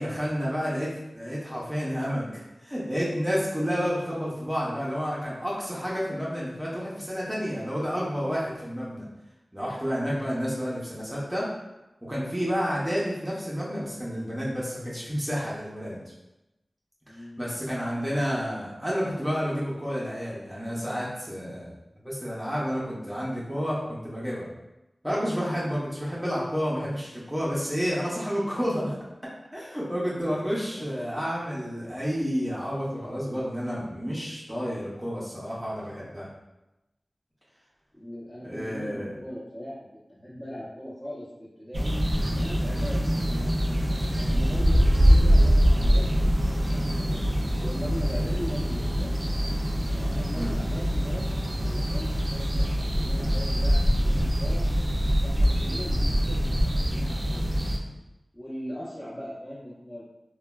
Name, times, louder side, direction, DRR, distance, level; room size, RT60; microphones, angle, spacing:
voice 1, 0.0-9.0 9.5-11.5 12.0-16.0 17.1-21.7 22.0-24.5 25.0-29.0 29.5-36.3 38.4-39.2 50.3-50.5, equal, 10° right, -6 dB, 0.7 m, -30 dB
voice 2, 17.1-17.6 30.0-30.3 30.7-31.0 37.9-39.7 40.2-41.2 41.6-41.9 42.3-43.8 44.1-46.3 46.6-49.1 49.9-54.6 55.2-57.5 58.3-60.0, equal, 20° left, -10 dB, 0.8 m, -40 dB
sound 1, 41.7-57.8, equal, 45° right, 0.4 m, -24 dB
3.0 x 2.1 x 2.3 m, 0.95 s
wide cardioid pair, 45°, 0 cm